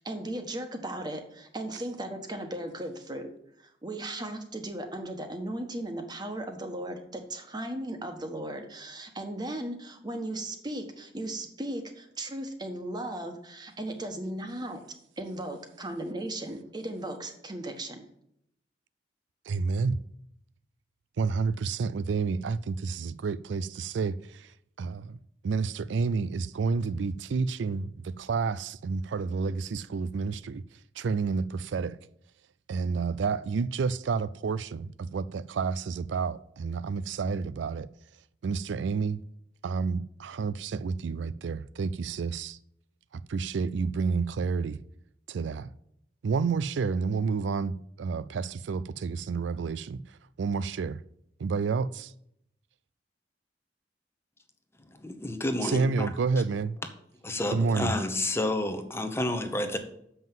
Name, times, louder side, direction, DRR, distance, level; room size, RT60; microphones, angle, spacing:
voice 1, 0.0-3.3 3.6-14.8 15.2-18.0, right 1 dB, 25° right, 1.3 m, -36 dB
voice 2, 19.5-20.0 21.2-24.5 24.8-25.2 25.4-30.6 31.0-32.0 32.7-37.9 38.4-39.2 39.6-42.6 43.3-44.8 45.3-45.7 46.2-50.0 50.4-51.0 51.4-52.1 55.6-56.8 57.5-57.9, right 4 dB, 85° right, 0.4 m, -30 dB
voice 3, 55.0-56.1 57.2-59.8, left 1 dB, 15° left, 0.9 m, -30 dB
7.3 x 5.8 x 7.4 m
head